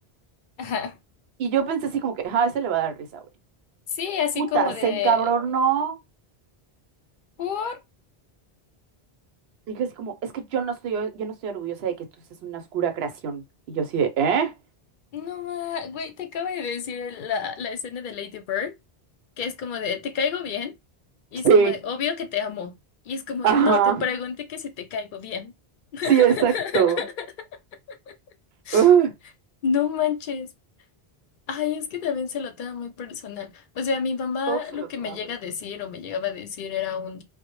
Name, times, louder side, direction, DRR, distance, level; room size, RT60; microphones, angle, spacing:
voice 1, 0.6-1.0 3.9-5.2 7.4-7.8 15.1-18.7 19.4-20.7 21.3-22.7 23.1-25.5 25.9-27.3 27.9-28.1 28.7-28.9 29.6-30.5 31.5-37.2, left 7 dB, 60° left, 0.6 m, -29 dB
voice 2, 1.4-3.2 4.4-6.0 9.7-12.1 12.4-14.5 21.4-21.8 23.4-24.0 26.0-27.0 28.7-29.1 34.5-35.2, right 7 dB, 75° right, 0.8 m, -22 dB
2.1 x 2.0 x 3.0 m
omnidirectional pair, 1.1 m